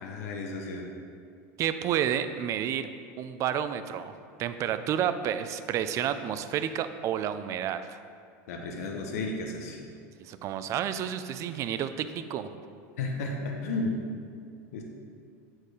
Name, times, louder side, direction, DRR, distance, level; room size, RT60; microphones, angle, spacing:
voice 1, 0.0-0.8 8.5-9.8 13.0-14.0 14.7-14.8, left 3 dB, 85° left, 1 dB, 0.9 m, -33 dB
voice 2, 1.6-2.9 3.2-8.0 10.2-12.5, right 9 dB, 40° right, 11 dB, 0.4 m, -30 dB
8.7 x 4.5 x 4.8 m, 2.3 s
supercardioid pair, 135°, 8 cm